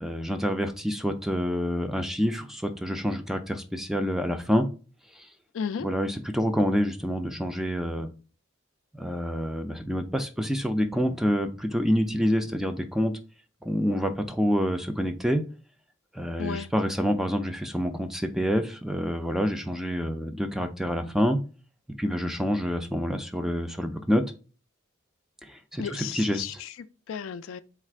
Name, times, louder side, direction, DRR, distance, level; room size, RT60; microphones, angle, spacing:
voice 1, 0.0-4.7 5.1-5.3 5.8-8.1 8.9-13.2 13.6-15.4 16.1-21.4 21.9-24.2 25.4-26.4, equal, ahead, 0.3 m, -27 dB
voice 2, 5.5-5.9 16.4-16.7 25.8-27.6, left 7 dB, 80° left, 0.3 m, -34 dB
4.0 x 2.4 x 4.5 m
head